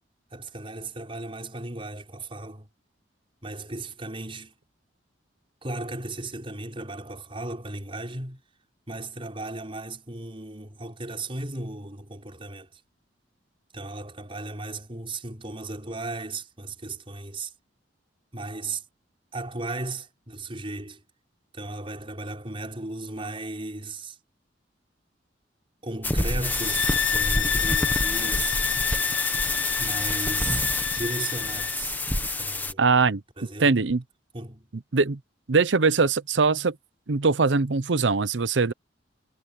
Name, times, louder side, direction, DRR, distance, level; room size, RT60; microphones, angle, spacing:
voice 1, 0.3-2.7 3.4-4.6 5.6-8.4 8.9-12.8 13.7-17.5 18.3-18.8 19.3-21.0 21.5-24.2 25.8-28.6 29.8-30.7 30.9-32.0 32.4-32.9 33.4-33.8 34.3-34.7, right 2 dB, 30° right, 5.6 m, -36 dB
sound 1, 26.0-32.7, left 2 dB, 10° left, 1.6 m, -27 dB
sound 2, 26.4-31.8, left 8 dB, 75° left, 0.7 m, -30 dB
voice 2, 32.8-33.2 33.6-34.0 34.9-35.2 35.5-36.8 37.1-38.7, right 4 dB, 75° right, 0.8 m, -21 dB
head